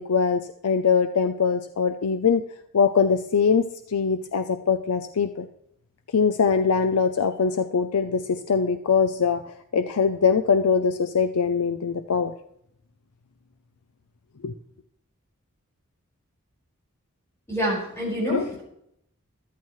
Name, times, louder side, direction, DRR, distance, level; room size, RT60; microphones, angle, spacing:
voice 1, 0.0-2.4 2.7-5.5 6.1-9.4 9.7-12.3 14.4-14.5 18.3-18.5, left 6 dB, 90° left, 9 dB, 0.5 m, -22 dB
voice 2, 17.5-18.6, equal, 10° left, -5 dB, 5.1 m, -27 dB
14.0 x 12.5 x 3.1 m, 0.76 s
head